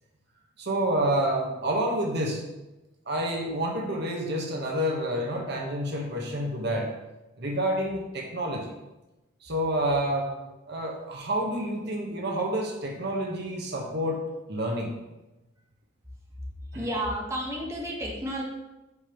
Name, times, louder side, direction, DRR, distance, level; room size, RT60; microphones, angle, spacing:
voice 1, 0.6-2.4 3.1-6.9 7.4-8.7 9.4-10.3 10.7-14.2 14.5-14.9 16.7-16.9, right 1 dB, 55° right, 0 dB, 1.1 m, -28 dB
voice 2, 16.7-18.4, equal, 15° right, -3 dB, 1.1 m, -31 dB
8.1 x 5.3 x 2.9 m, 1.0 s
head